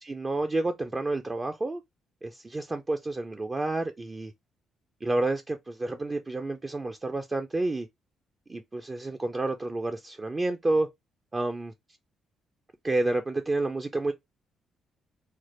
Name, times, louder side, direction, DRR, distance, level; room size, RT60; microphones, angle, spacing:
voice 1, 0.0-1.8 2.2-4.3 5.0-7.9 8.5-10.9 11.3-11.7 12.8-14.1, right 2 dB, 25° right, 0.4 m, -29 dB
3.2 x 2.1 x 3.0 m
cardioid pair, 90°, 0 cm